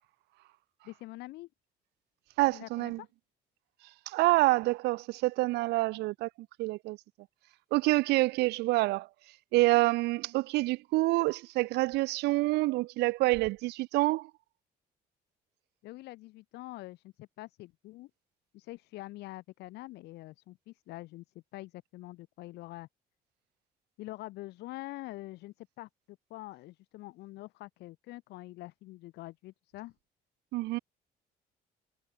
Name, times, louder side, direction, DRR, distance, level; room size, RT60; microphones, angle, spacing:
voice 1, 0.8-1.5 2.5-3.1 15.8-18.1 18.5-21.2 21.5-22.9 24.0-29.9, left 18 dB, 85° left, 1.7 m, -45 dB
voice 2, 2.4-3.0 4.1-6.3 6.6-7.0 7.7-9.1 9.5-14.3 30.5-30.8, right 20 dB, 85° right, 0.5 m, -27 dB
cardioid pair, 110°, 17 cm